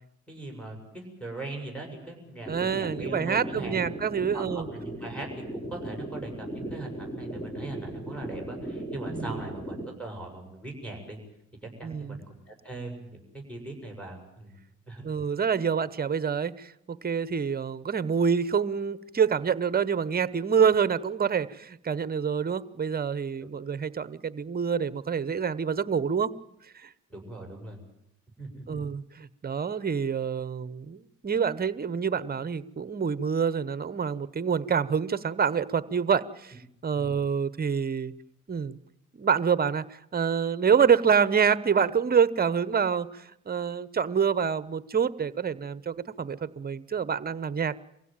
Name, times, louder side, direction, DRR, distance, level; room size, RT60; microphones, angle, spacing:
voice 1, 0.3-3.8 4.3-11.2 11.6-14.5 14.9-15.0 27.1-27.8 28.4-28.8 37.0-37.1, right 2 dB, 5° left, 1 dB, 6.9 m, -40 dB
sound 1, 2.4-9.9, right 1 dB, 20° left, 3.3 m, -37 dB
voice 2, 2.5-4.7 9.1-9.4 11.8-12.2 15.0-26.3 26.8-26.9 28.7-36.5 36.8-38.1 38.5-38.8 39.2-39.8 40.1-47.8, right 6 dB, 30° right, 17 dB, 1.0 m, -27 dB
24.0 x 16.0 x 9.1 m, 0.83 s
cardioid pair, 90°, 30 cm